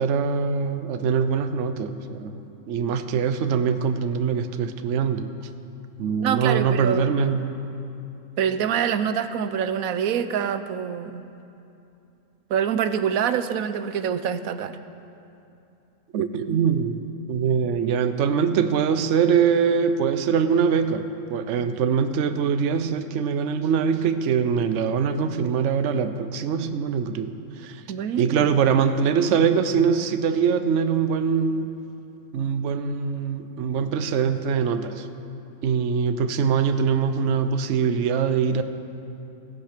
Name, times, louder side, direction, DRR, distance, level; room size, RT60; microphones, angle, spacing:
voice 1, 0.0-5.3 6.0-7.5 16.1-27.3 27.6-27.8 28.2-31.8 32.3-35.0 35.6-38.6, right 6 dB, 60° right, 10 dB, 1.0 m, -23 dB
voice 2, 6.2-7.0 8.4-11.2 12.5-14.8 27.9-28.6, right 8 dB, 80° right, 12 dB, 1.1 m, -25 dB
17.0 x 15.0 x 5.1 m, 2.7 s
omnidirectional pair, 1.5 m